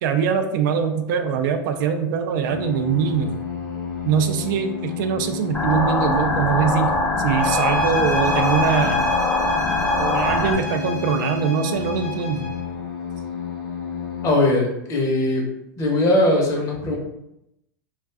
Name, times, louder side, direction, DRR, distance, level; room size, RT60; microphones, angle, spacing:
voice 1, 0.0-3.3 4.0-6.9 7.2-9.1 10.0-12.4, right 7 dB, 65° right, 7 dB, 0.4 m, -22 dB
sound 1, 2.5-14.3, left 7 dB, 90° left, 0.7 m, -31 dB
sound 2, 5.5-10.5, left 2 dB, 10° left, 0.4 m, -22 dB
sound 3, 7.4-12.6, left 4 dB, 60° left, 0.9 m, -29 dB
voice 2, 14.2-15.5 15.8-17.0, left 1 dB, 30° left, -1 dB, 0.8 m, -20 dB
2.4 x 2.3 x 3.3 m, 0.84 s
supercardioid pair, 125°, 11 cm